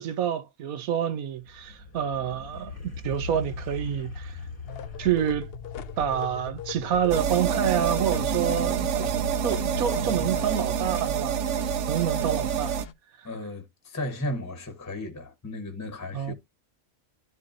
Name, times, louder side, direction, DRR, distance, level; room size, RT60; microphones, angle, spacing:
voice 1, 0.0-4.3 5.0-5.5 6.0-9.2 9.4-11.4 11.9-12.8 16.1-16.3, right 9 dB, 90° right, 1.3 m, -28 dB
sound 1, 1.3-5.6, left 3 dB, 85° left, 2.7 m, -39 dB
sound 2, 4.7-12.9, left 6 dB, 55° left, 0.7 m, -39 dB
sound 3, 7.1-12.9, right 8 dB, 65° right, 0.8 m, -27 dB
voice 2, 13.2-16.3, left 1 dB, 15° left, 1.0 m, -35 dB
11.5 x 4.5 x 2.6 m
omnidirectional pair, 1.5 m